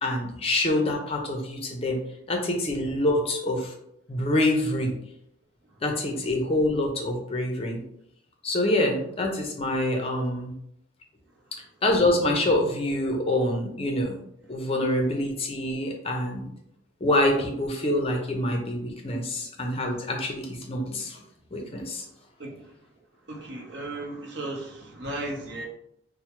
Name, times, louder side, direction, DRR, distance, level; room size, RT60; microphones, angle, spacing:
voice 1, 0.0-2.0 2.3-3.7 4.1-4.9 5.8-7.8 8.4-10.5 11.8-14.2 14.5-16.5 17.0-21.2 21.5-22.0, left 1 dB, 30° left, 0.5 m, -26 dB
voice 2, 22.4-23.0 23.3-25.7, right 2 dB, 55° right, 0.7 m, -36 dB
4.3 x 2.0 x 2.9 m
head